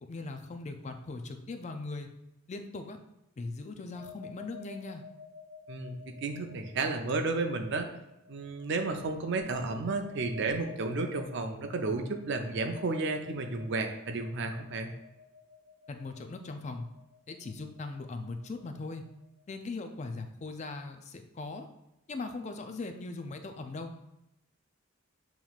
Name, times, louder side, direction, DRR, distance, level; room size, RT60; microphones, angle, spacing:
voice 1, 0.0-2.1 2.5-3.0 3.4-5.0 15.9-16.9 17.3-19.0 19.5-21.7 22.1-23.9, left 3 dB, 35° left, 6 dB, 0.4 m, -39 dB
sound 1, 3.9-19.5, left 5 dB, 10° right, 0.9 m, -52 dB
voice 2, 5.7-7.9 8.3-14.9, right 3 dB, 55° right, 5 dB, 0.5 m, -32 dB
7.0 x 3.0 x 2.4 m, 0.88 s
head